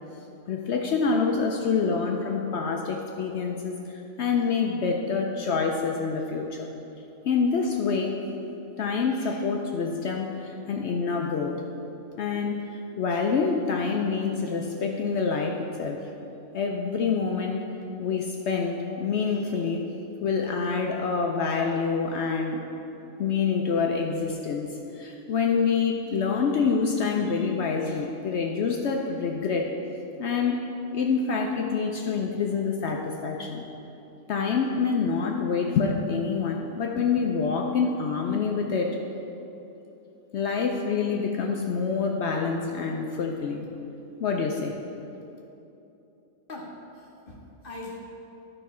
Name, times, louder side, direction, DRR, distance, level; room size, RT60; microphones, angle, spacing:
voice 1, 0.5-6.7 7.2-8.2 8.8-11.6 12.2-16.0 16.5-17.7 18.0-19.8 20.2-22.6 23.2-29.7 30.2-30.6 30.9-33.7 34.3-39.0 40.3-43.7 44.2-44.7, left 5 dB, 65° left, 2 dB, 0.7 m, -26 dB
voice 2, 46.5-48.0, left 2 dB, 45° left, -2 dB, 1.0 m, -41 dB
11.5 x 5.4 x 4.2 m, 2.9 s
omnidirectional pair, 1.5 m